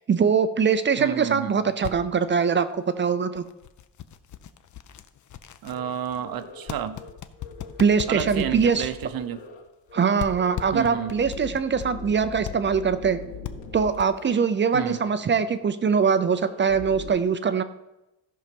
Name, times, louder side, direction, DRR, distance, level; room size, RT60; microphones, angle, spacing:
voice 1, 0.0-3.4 7.8-8.9 9.9-13.2 13.7-17.6, right 6 dB, 25° right, 12 dB, 0.4 m, -22 dB
voice 2, 1.0-1.6 5.6-7.0 8.1-9.4 10.7-11.1 14.7-15.0, right 9 dB, 50° right, 11 dB, 0.8 m, -30 dB
sound 1, 1.7-1.9 2.6-2.8 3.4-9.9 10.2-11.9 12.4-12.5 13.0-13.1 13.4-13.5 13.9-14.3, left 11 dB, 40° left, 0.5 m, -38 dB
sound 2, 5.7-5.9 6.2-6.7 6.9-7.1 7.4-8.8 9.1-9.6 9.9-10.0 10.3-13.9 14.2-14.3 14.7-15.2 15.4-15.6 15.9-17.1, left 4 dB, 55° left, 2.1 m, -41 dB
14.0 x 5.6 x 5.2 m, 0.98 s
cardioid pair, 140°, 47 cm